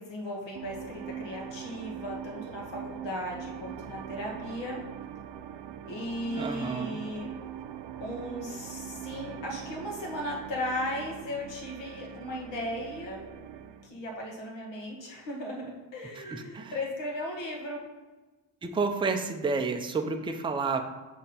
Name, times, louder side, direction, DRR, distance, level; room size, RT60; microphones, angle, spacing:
voice 1, 0.0-4.8 5.8-7.3 8.0-13.2 13.8-17.8, left 1 dB, 65° left, -1 dB, 1.8 m, -36 dB
sound 1, 0.5-13.9, right 8 dB, 60° right, 0.6 m, -42 dB
voice 2, 6.4-7.0 16.2-16.7 18.6-20.8, right 4 dB, 10° right, 5 dB, 0.4 m, -30 dB
7.2 x 3.9 x 4.3 m, 1.2 s
cardioid pair, 130°, 47 cm